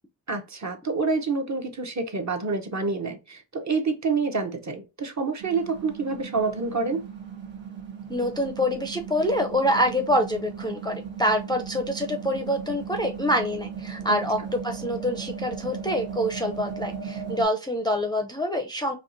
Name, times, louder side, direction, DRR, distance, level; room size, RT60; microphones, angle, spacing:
voice 1, 0.3-7.0 14.1-14.2, right 4 dB, 40° right, 0.8 m, -27 dB
sound 1, 5.4-17.4, right 7 dB, 80° right, 1.5 m, -37 dB
voice 2, 8.1-19.0, equal, 10° left, 0.5 m, -26 dB
4.6 x 2.8 x 2.5 m
wide cardioid pair, 100°, 46 cm